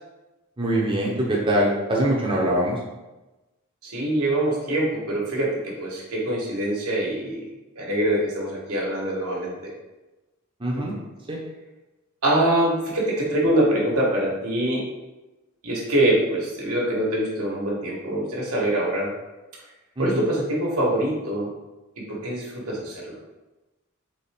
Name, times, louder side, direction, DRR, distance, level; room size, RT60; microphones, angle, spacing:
voice 1, 0.6-2.8 10.6-10.9 11.3-11.4 20.0-20.2, right 1 dB, 25° right, -4 dB, 0.7 m, -23 dB
voice 2, 3.8-7.4 7.8-9.7 10.7-10.8 12.2-14.8 15.6-19.1 20.0-21.5 22.1-23.1, right 1 dB, 85° right, -3 dB, 1.3 m, -24 dB
4.1 x 3.2 x 3.5 m, 1.1 s
head